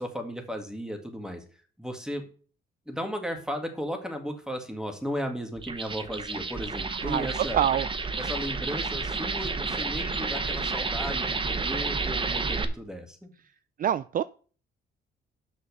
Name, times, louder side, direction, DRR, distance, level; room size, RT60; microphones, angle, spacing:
voice 1, 0.0-1.4 1.8-2.2 2.9-7.6 8.2-13.3, equal, 5° right, 5 dB, 2.1 m, -35 dB
sound 1, 5.6-12.6, right 4 dB, 25° right, 1.0 m, -30 dB
voice 2, 7.0-7.9 13.8-14.2, right 10 dB, 45° right, 15 dB, 0.4 m, -26 dB
6.3 x 5.7 x 6.8 m, 0.41 s
cardioid pair, 90°, 20 cm